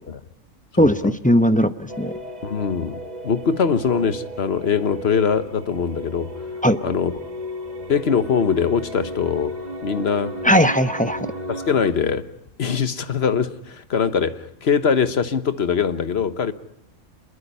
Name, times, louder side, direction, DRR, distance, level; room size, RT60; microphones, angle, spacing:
voice 1, 0.8-2.1 6.6-6.8 10.4-11.3, equal, 5° left, 9 dB, 0.8 m, -18 dB
sound 1, 1.9-11.9, equal, 30° right, 1.7 m, -34 dB
voice 2, 2.4-6.3 6.8-7.1 7.9-9.5 9.8-10.4 11.5-12.3 12.6-16.5, left 6 dB, 50° left, 11 dB, 1.4 m, -22 dB
27.5 x 21.5 x 5.5 m, 0.77 s
omnidirectional pair, 1.4 m